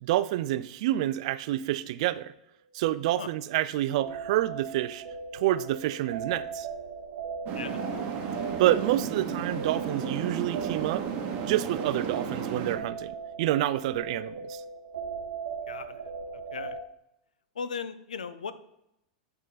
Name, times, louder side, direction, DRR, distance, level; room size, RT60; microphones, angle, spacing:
voice 1, 0.0-2.3 2.7-5.0 5.3-6.7 8.6-11.1 11.4-14.6, right 14 dB, 60° right, 15 dB, 0.3 m, -28 dB
sound 1, 4.0-16.8, right 5 dB, 80° right, 0.7 m, -39 dB
sound 2, 7.5-12.8, right 7 dB, 45° right, 0.9 m, -34 dB
voice 2, 15.7-16.0 16.5-16.8 17.6-18.5, left 6 dB, 85° left, 13 dB, 0.5 m, -37 dB
8.2 x 3.9 x 4.0 m, 0.82 s
hypercardioid pair, 105°, 4 cm